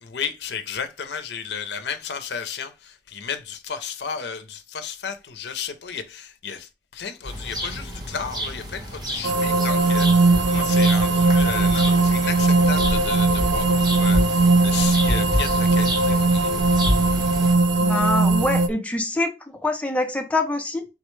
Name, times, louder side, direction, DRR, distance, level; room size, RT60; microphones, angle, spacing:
voice 1, 0.0-16.5, left 6 dB, 70° left, 0.5 m, -33 dB
sound 1, 7.2-17.6, equal, 25° right, 0.9 m, -33 dB
sound 2, 9.2-18.7, right 3 dB, 85° right, 0.4 m, -19 dB
Wind, 9.8-18.7, equal, 65° right, 2.1 m, -30 dB
voice 2, 17.8-19.3 19.6-20.9, left 2 dB, 10° left, 0.5 m, -24 dB
3.8 x 2.1 x 3.0 m
head